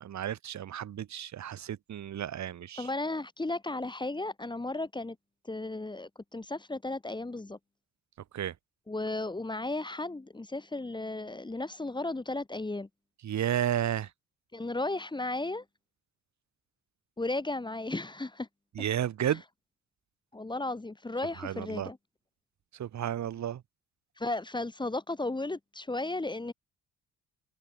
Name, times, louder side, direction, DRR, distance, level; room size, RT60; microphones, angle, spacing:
voice 1, 0.0-2.9 8.3-8.5 13.2-14.1 18.7-19.4 21.4-21.9 22.7-23.6, right 10 dB, 65° right, 5.0 m, -32 dB
voice 2, 2.8-5.2 5.4-7.6 8.9-12.9 14.5-15.6 17.2-18.5 20.3-22.0 24.2-26.5, left 2 dB, 15° left, 2.1 m, -34 dB
cardioid pair, 90°, 30 cm